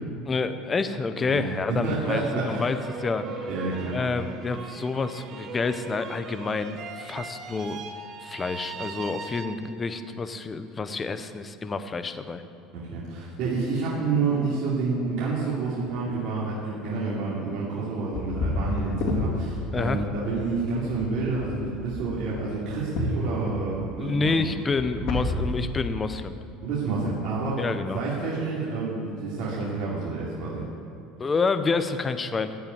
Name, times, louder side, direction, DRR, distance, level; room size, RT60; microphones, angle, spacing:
voice 1, 0.3-3.3 3.9-7.8 8.2-12.4 19.7-20.0 24.0-26.3 27.6-28.0 31.2-32.6, left 4 dB, 15° left, 10 dB, 0.6 m, -28 dB
sound 1, 1.7-10.0, right 4 dB, 40° right, 1.2 m, -40 dB
voice 2, 1.8-2.7 3.5-4.0 12.7-24.3 26.6-27.6 27.9-30.6, right 4 dB, 55° right, -8 dB, 3.1 m, -29 dB
sound 2, 18.1-25.9, left 2 dB, 60° left, 2.3 m, -31 dB
16.0 x 5.5 x 9.6 m, 2.6 s
cardioid pair, 155°, 0 cm